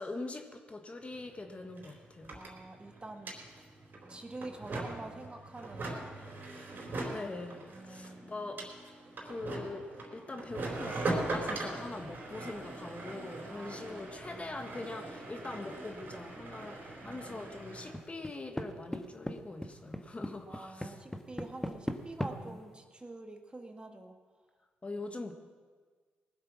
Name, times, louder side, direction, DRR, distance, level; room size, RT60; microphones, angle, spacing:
voice 1, 0.0-2.4 7.1-8.6 9.2-9.9 10.1-21.0 22.3-22.6 24.8-25.3, left 2 dB, 30° left, 5 dB, 1.5 m, -43 dB
sound 1, 1.1-1.2 1.4-18.0, right 2 dB, 50° right, 4.0 m, -41 dB
voice 2, 2.3-3.3 4.1-6.0 7.7-8.5 13.5-14.4 17.0-17.6 20.5-24.1, right 2 dB, 20° right, 4 dB, 1.7 m, -47 dB
sound 2, 17.9-18.7 18.9-19.3 19.6-22.3, left 1 dB, 10° left, 1.2 m, -36 dB
19.5 x 7.7 x 6.1 m, 1.5 s
supercardioid pair, 55°, 4 cm